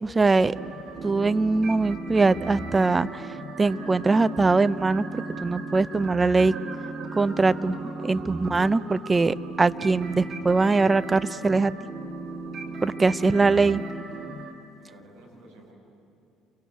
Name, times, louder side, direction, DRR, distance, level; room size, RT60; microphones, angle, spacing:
voice 1, 0.0-0.6 1.0-3.2 3.6-6.5 7.1-11.7 12.8-13.8, right 3 dB, 20° right, 14 dB, 0.6 m, -22 dB
sound 1, 0.5-14.5, right 3 dB, 40° right, 2.8 m, -36 dB
voice 2, 12.7-13.4 14.8-15.7, right 1 dB, 70° right, -2 dB, 5.8 m, -52 dB
28.5 x 24.5 x 8.2 m, 2.6 s
figure-of-eight pair, 50°, 0 cm